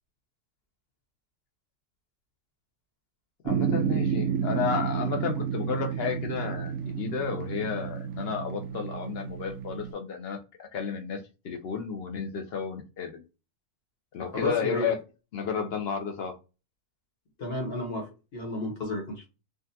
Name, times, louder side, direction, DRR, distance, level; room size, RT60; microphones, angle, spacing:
voice 1, 3.4-13.2 14.1-15.0 15.3-16.3, left 6 dB, 70° left, 4 dB, 0.6 m, -32 dB
sound 1, 3.5-9.9, right 7 dB, 65° right, 0.9 m, -31 dB
voice 2, 14.3-14.9 17.4-19.3, left 1 dB, 45° left, 1 dB, 1.0 m, -32 dB
3.6 x 2.2 x 2.7 m, 0.29 s
omnidirectional pair, 1.6 m